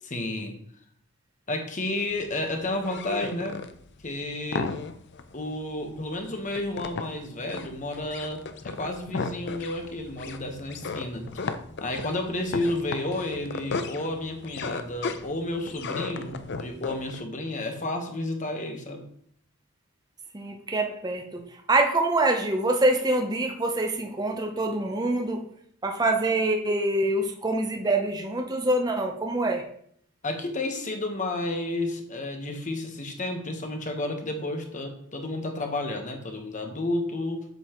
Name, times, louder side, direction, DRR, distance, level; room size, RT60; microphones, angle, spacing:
voice 1, 0.0-0.6 1.5-3.6 4.0-4.7 5.3-11.4 11.8-19.0 30.2-37.5, left 2 dB, 35° left, 4 dB, 1.1 m, -31 dB
sound 1, 2.0-17.2, left 4 dB, 55° left, 0.5 m, -35 dB
voice 2, 20.3-21.4 21.7-25.4 25.8-29.6, right 2 dB, 20° right, 3 dB, 0.6 m, -25 dB
8.0 x 6.9 x 3.0 m, 0.66 s
head